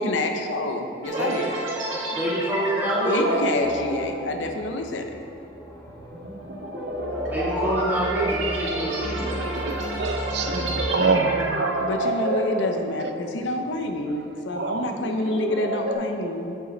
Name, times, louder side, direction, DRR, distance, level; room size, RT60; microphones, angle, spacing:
voice 1, 0.0-1.6 3.0-5.2 11.8-16.6, left 2 dB, 80° left, 5 dB, 0.7 m, -28 dB
sound 1, 1.0-13.6 13.9-14.1 14.6-15.9, right 1 dB, 90° right, 1.9 m, -29 dB
voice 2, 2.1-3.4 7.1-9.4, right 1 dB, 10° right, -7 dB, 1.8 m, -27 dB
sound 2, 3.6-10.8, equal, 15° left, 0.7 m, -37 dB
voice 3, 9.5-11.7 13.0-13.1 14.5-14.9, right 4 dB, 60° right, 7 dB, 0.5 m, -26 dB
8.3 x 7.2 x 4.0 m, 2.6 s
head